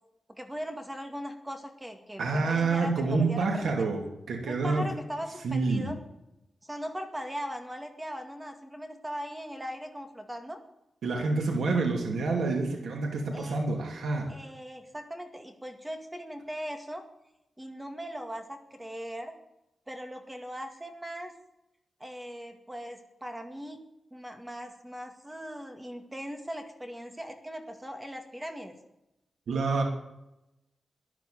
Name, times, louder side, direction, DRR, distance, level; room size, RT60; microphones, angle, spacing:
voice 1, 0.4-3.7 4.5-6.0 6.6-10.6 13.3-13.6 14.3-17.0 17.6-19.3 19.9-21.3 22.0-23.8 24.1-28.7, equal, 10° right, 6 dB, 2.1 m, -39 dB
voice 2, 2.2-4.9 5.4-5.9 11.0-14.3 29.5-29.8, right 3 dB, 90° right, 2 dB, 2.7 m, -28 dB
14.0 x 11.0 x 9.3 m, 0.89 s
wide cardioid pair, 120°, 0 cm